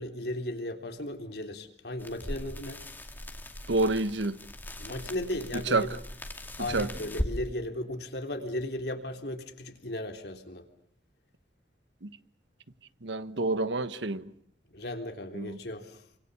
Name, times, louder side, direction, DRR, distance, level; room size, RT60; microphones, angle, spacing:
voice 1, 0.0-2.8 4.8-6.0 6.6-10.7 14.7-16.0, left 1 dB, 65° left, 3.6 m, -36 dB
sound 1, 2.0-7.3, left 1 dB, 10° left, 2.4 m, -39 dB
voice 2, 3.7-4.4 5.7-5.9 6.7-6.9 12.0-12.1 13.0-14.3 15.3-15.6, right 2 dB, 85° right, 1.3 m, -28 dB
29.0 x 25.5 x 7.0 m
head